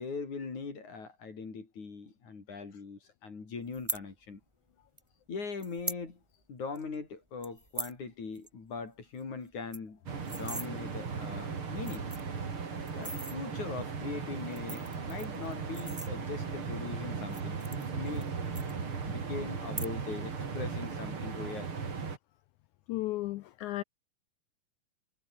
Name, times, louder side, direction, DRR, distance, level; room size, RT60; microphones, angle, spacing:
voice 1, 0.0-4.4 5.3-6.2 6.5-10.0 10.3-12.1 12.8-18.3 19.1-21.7, left 4 dB, 55° left, 6.0 m, -41 dB
sound 1, 3.7-4.0 5.0-5.1 5.6-6.0 6.4-6.5 6.7-7.0 7.4-8.0 8.3-8.5 8.8-8.9 9.2-9.3 9.5-10.7 11.4-11.5 11.8-12.4 12.9-13.4 14.3-16.5 17.2-18.3 18.5-19.2 19.6-20.2 20.5-20.9, right 1 dB, 10° right, 3.3 m, -40 dB
sound 2, 10.1-22.2, right 5 dB, 40° right, 3.7 m, -37 dB
voice 2, 22.9-23.8, left 17 dB, 85° left, 1.7 m, -34 dB
omnidirectional pair, 4.0 m